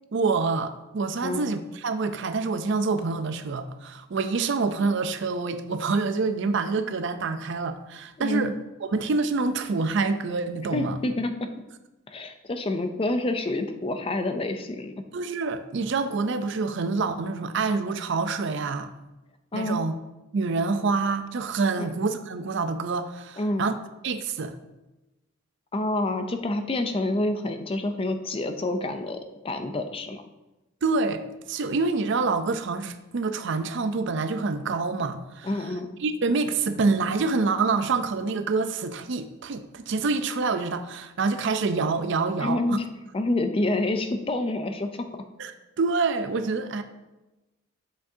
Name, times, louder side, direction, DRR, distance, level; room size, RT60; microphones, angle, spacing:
voice 1, 0.1-8.5 8.8-11.0 15.1-18.9 19.5-19.9 20.3-23.7 24.0-24.6 30.8-31.2 31.5-35.5 36.0-42.8 45.4-45.5 45.8-46.8, right 4 dB, 60° right, 10 dB, 0.5 m, -26 dB
voice 2, 8.2-8.5 10.7-11.5 12.1-14.9 19.5-19.8 21.8-21.9 23.4-23.7 25.7-30.2 35.4-36.0 42.4-42.8 43.1-45.1, left 2 dB, 25° left, 7 dB, 0.4 m, -28 dB
7.5 x 5.9 x 2.7 m, 1.0 s
head